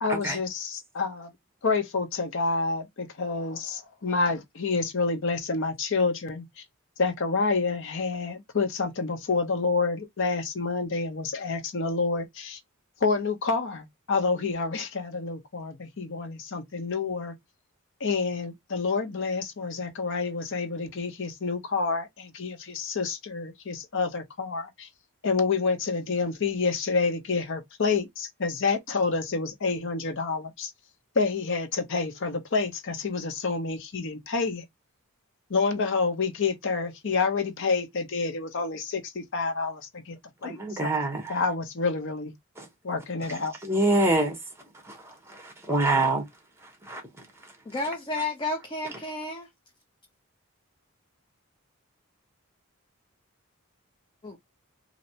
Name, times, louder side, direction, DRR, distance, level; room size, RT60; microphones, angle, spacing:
voice 1, 0.0-1.3 1.6-6.6 7.0-12.6 13.0-17.3 18.0-24.9 25.2-30.7 31.1-34.6 35.5-40.2 40.4-40.9 41.3-42.3 42.8-43.5, left 4 dB, 60° left, 0.7 m, -28 dB
voice 2, 40.4-41.4 42.6-42.7 43.6-44.4 44.8-46.2 46.8-47.0, right 2 dB, 10° right, 1.1 m, -26 dB
voice 3, 47.7-49.5 54.2-54.4, left 2 dB, 20° left, 0.6 m, -31 dB
3.1 x 2.8 x 2.7 m
head